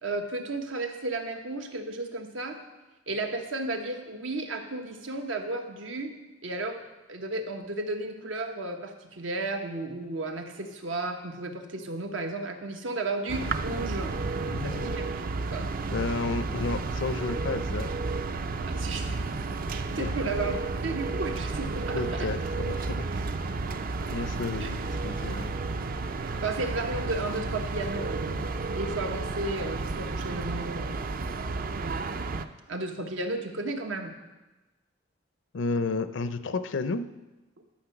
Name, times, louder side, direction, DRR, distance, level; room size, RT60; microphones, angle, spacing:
voice 1, 0.0-2.6 3.1-6.1 6.4-6.8 7.1-14.1 14.6-15.0 15.5-15.7 18.6-19.2 19.7-20.6 20.8-22.3 24.6-24.7 26.4-28.4 28.8-31.1 32.7-34.1, right 2 dB, 85° right, 5 dB, 1.1 m, -33 dB
sound 1, 13.3-32.4, right 3 dB, 50° right, 0.5 m, -32 dB
voice 2, 14.3-15.0 15.9-17.9 19.9-20.1 21.9-23.1 23.5-23.6 24.1-25.5 35.5-37.1, left 3 dB, 70° left, 12 dB, 0.5 m, -32 dB
11.5 x 6.3 x 5.9 m, 1.1 s
head